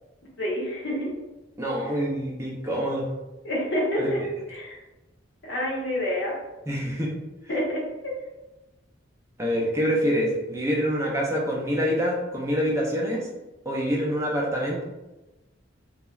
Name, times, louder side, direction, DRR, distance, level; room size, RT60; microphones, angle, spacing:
voice 1, 0.4-1.1 3.4-4.2 4.5-4.8 5.4-6.3 7.5-8.1, left 1 dB, 65° left, -3 dB, 0.8 m, -28 dB
voice 2, 1.6-3.1 4.0-4.1 6.7-7.1 9.4-13.3 13.7-14.8, equal, 15° right, -3 dB, 0.4 m, -26 dB
3.0 x 2.3 x 2.2 m, 1.0 s
head